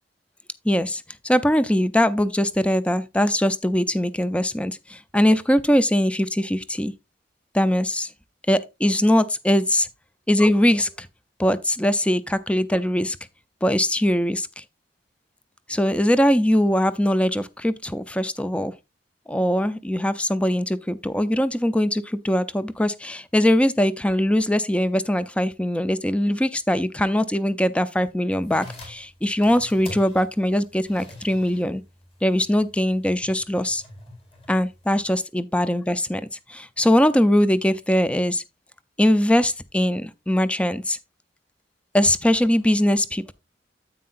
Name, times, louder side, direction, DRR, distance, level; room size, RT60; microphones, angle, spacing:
voice 1, 0.6-6.9 7.5-8.1 8.5-9.9 10.3-11.1 11.4-13.2 13.6-14.6 15.7-18.7 19.3-31.8 32.2-33.8 34.5-36.2 36.5-38.4 39.0-41.0 41.9-43.3, equal, 5° left, 0.5 m, -21 dB
sound 1, 28.3-35.2, left 2 dB, 35° left, 4.3 m, -45 dB
9.6 x 8.5 x 2.5 m
head